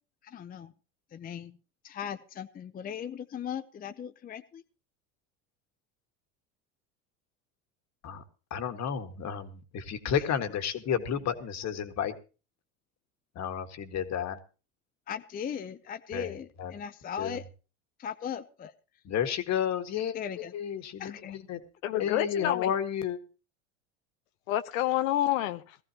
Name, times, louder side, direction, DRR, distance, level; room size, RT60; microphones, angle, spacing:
voice 1, 0.2-0.7 1.1-1.6 1.8-4.6 15.1-17.4 18.0-18.7 20.1-20.5 21.0-21.4 21.9-22.0, left 8 dB, 25° left, 0.6 m, -38 dB
voice 2, 8.5-12.2 13.4-14.4 16.1-16.7 17.2-17.4 19.0-20.2 20.5-21.6 22.0-23.2, left 8 dB, 45° left, 1.8 m, -31 dB
voice 3, 21.8-22.7 24.5-25.8, left 13 dB, 85° left, 0.9 m, -28 dB
18.0 x 14.5 x 2.9 m
supercardioid pair, 105°, 39 cm